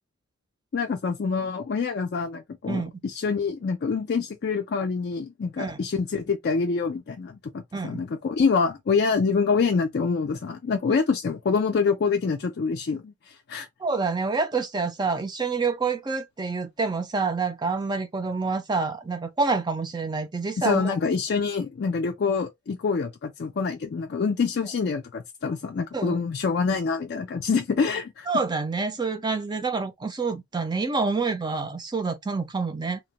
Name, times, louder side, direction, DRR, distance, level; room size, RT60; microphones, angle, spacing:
voice 1, 0.7-13.7 20.6-28.3, left 5 dB, 50° left, 0.3 m, -26 dB
voice 2, 7.7-8.0 13.8-21.0 25.9-26.2 28.3-33.0, right 4 dB, 20° right, 0.4 m, -27 dB
2.8 x 2.1 x 2.7 m
head